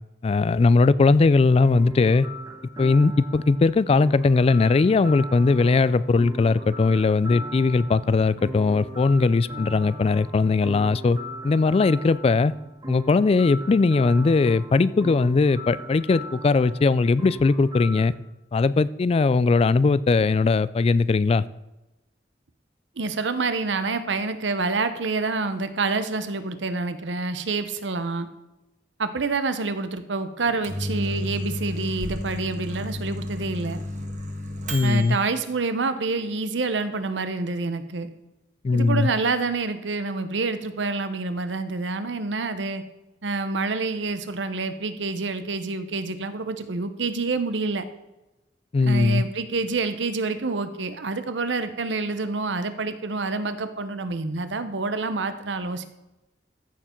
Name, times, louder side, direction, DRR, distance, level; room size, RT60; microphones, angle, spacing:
voice 1, 0.2-2.3 2.8-11.2 11.4-12.5 12.9-18.1 18.5-21.4 34.7-35.2 38.6-39.1 48.7-49.2, left 3 dB, 35° left, 18 dB, 0.3 m, -19 dB
sound 1, 1.5-18.1, equal, 20° right, 1.3 m, -38 dB
voice 2, 23.0-28.3 29.0-33.8 34.8-38.1 38.7-42.8 43.2-47.8 48.8-55.9, right 3 dB, 90° right, 11 dB, 0.8 m, -27 dB
Microwave oven, 30.4-35.2, left 1 dB, 45° right, 1.4 m, -32 dB
14.5 x 6.9 x 4.4 m, 1.0 s
head